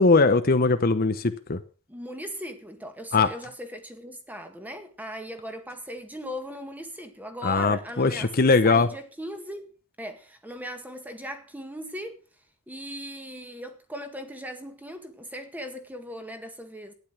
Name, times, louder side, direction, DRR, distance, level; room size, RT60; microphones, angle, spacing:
voice 1, 0.0-1.6 3.1-3.3 7.4-8.9, left 3 dB, 45° left, 0.9 m, -20 dB
voice 2, 1.9-9.7 10.0-12.2 12.7-16.9, equal, 10° right, 1.8 m, -38 dB
12.0 x 10.0 x 6.0 m
head